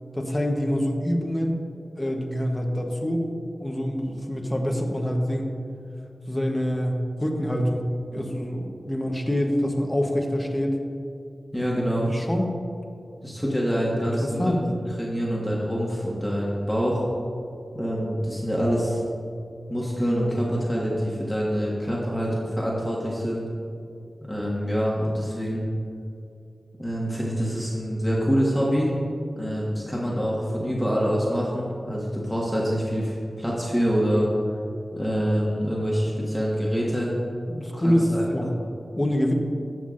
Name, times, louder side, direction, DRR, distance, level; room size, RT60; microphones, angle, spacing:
voice 1, 0.1-1.6 1.9-3.2 3.6-5.5 6.3-10.8 12.1-12.5 14.0-14.6 37.5-38.5 39.0-39.3, equal, 20° left, 1 dB, 1.0 m, -25 dB
voice 2, 11.5-12.1 13.2-17.0 17.7-19.0 19.7-23.4 24.2-25.6 26.8-28.9 29.4-34.3 34.9-37.1 37.8-38.5, equal, ahead, -5 dB, 1.5 m, -26 dB
14.5 x 6.0 x 2.5 m, 2.5 s
cardioid pair, 50°, 0 cm